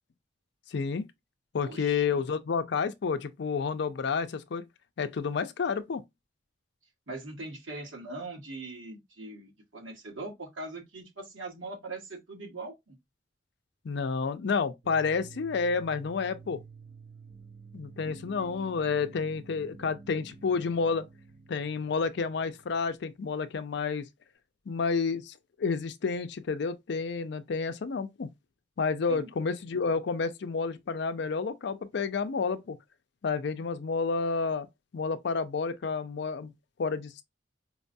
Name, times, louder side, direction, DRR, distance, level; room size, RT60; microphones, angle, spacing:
voice 1, 0.7-1.1 1.5-4.7 5.0-6.0 13.8-16.6 17.7-21.1 21.5-24.1 24.7-28.3 28.8-32.8 33.2-34.7 34.9-36.5 36.8-37.2, left 5 dB, 60° left, 0.4 m, -30 dB
voice 2, 1.6-2.2 7.1-13.0 29.1-29.3, right 2 dB, 85° right, 1.6 m, -41 dB
sound 1, 14.8-23.6, right 4 dB, 50° right, 1.0 m, -50 dB
4.6 x 2.2 x 2.6 m
head